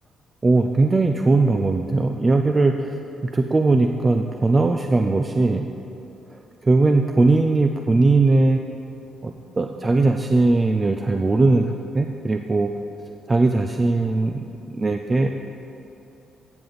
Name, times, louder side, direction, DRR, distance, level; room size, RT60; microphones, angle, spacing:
voice 1, 0.4-5.7 6.3-8.6 9.2-12.7 13.3-14.5 14.7-15.3, right 3 dB, 25° right, 5 dB, 0.4 m, -19 dB
14.5 x 7.6 x 4.0 m, 3.0 s
cardioid pair, 110°, 0 cm